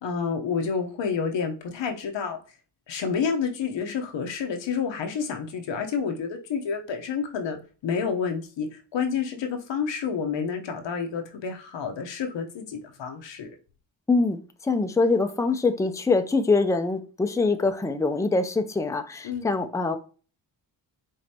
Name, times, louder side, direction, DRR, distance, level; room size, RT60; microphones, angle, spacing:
voice 1, 0.0-2.4 2.9-13.5 19.2-19.5, left 6 dB, 90° left, 4 dB, 1.0 m, -29 dB
voice 2, 14.1-20.0, left 3 dB, 5° left, 7 dB, 0.5 m, -24 dB
5.0 x 3.3 x 2.8 m, 0.37 s
cardioid pair, 80°, 43 cm